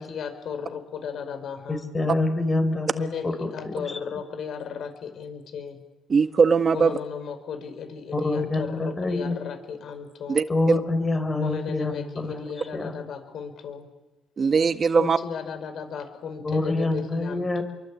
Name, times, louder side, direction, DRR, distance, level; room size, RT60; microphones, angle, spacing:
voice 1, 0.0-1.9 2.9-5.8 6.7-10.4 11.4-13.9 14.9-17.6, left 6 dB, 65° left, 9 dB, 5.3 m, -35 dB
voice 2, 1.7-4.0 8.1-9.4 10.5-12.5 12.7-13.0 16.4-17.6, left 2 dB, 25° left, 8 dB, 4.9 m, -26 dB
voice 3, 6.1-7.0 10.3-10.8 14.4-15.2, right 5 dB, 45° right, 10 dB, 1.6 m, -20 dB
28.5 x 23.5 x 8.6 m, 1.1 s
cardioid pair, 90°, 0 cm